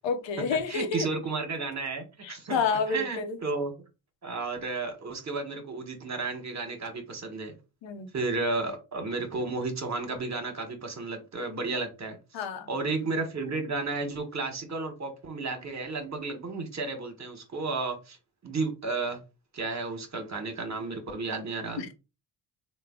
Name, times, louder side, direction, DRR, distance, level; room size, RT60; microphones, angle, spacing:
voice 1, 0.0-1.1 2.2-3.4 7.8-8.1 12.3-12.7 21.8-21.9, left 5 dB, 75° left, 0.8 m, -29 dB
voice 2, 0.7-3.7 4.2-7.5 8.1-12.2 12.7-18.2 18.4-19.2 19.5-21.9, right 3 dB, 35° right, 1.2 m, -33 dB
3.3 x 2.2 x 3.6 m
cardioid pair, 65°, 45 cm